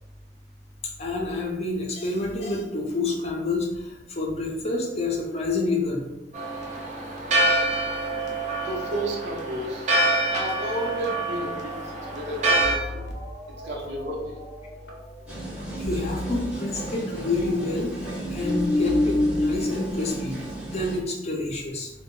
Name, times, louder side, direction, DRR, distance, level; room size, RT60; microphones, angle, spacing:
voice 1, 1.0-6.1 15.8-21.9, left 2 dB, 35° left, -1 dB, 0.5 m, -28 dB
Church bell, 6.3-12.8, right 2 dB, 45° right, 0.4 m, -26 dB
voice 2, 8.6-9.9 10.3-11.7 12.1-13.1 13.6-14.3, right 1 dB, 80° right, -2 dB, 0.7 m, -31 dB
sound 1, 10.9-15.5 15.8-16.3 16.9-17.0 18.3-19.7, left 1 dB, 85° left, 0.6 m, -30 dB
sound 2, 15.3-21.0, right 1 dB, 5° right, 0.7 m, -35 dB
2.1 x 2.0 x 3.6 m, 0.99 s
head